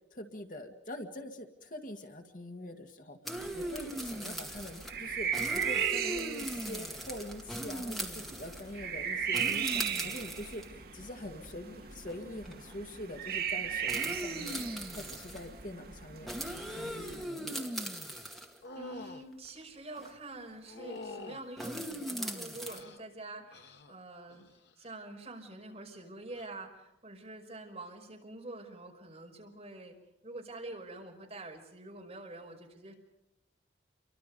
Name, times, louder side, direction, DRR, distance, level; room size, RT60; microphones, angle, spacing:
voice 1, 0.1-3.2 3.5-14.6 15.0-17.7, left 1 dB, 45° left, 5 dB, 1.9 m, -44 dB
sound 1, 3.3-4.9 5.3-8.7 9.3-10.7 11.4-11.5 12.1-12.2 12.5-12.7 13.9-15.5 16.3-18.6 20.0-20.1 21.6-22.8, equal, ahead, 2.0 m, -39 dB
sound 2, 3.4-17.2, right 8 dB, 55° right, 1.4 m, -37 dB
sound 3, 18.6-19.2 20.7-21.4 22.2-23.0 23.5-23.9 24.3-24.7 26.3-26.5, left 2 dB, 70° left, 1.5 m, -46 dB
voice 2, 18.7-24.4 24.8-30.0 30.2-32.9, right 2 dB, 35° right, 1 dB, 5.5 m, -46 dB
29.5 x 24.0 x 5.3 m, 0.87 s
head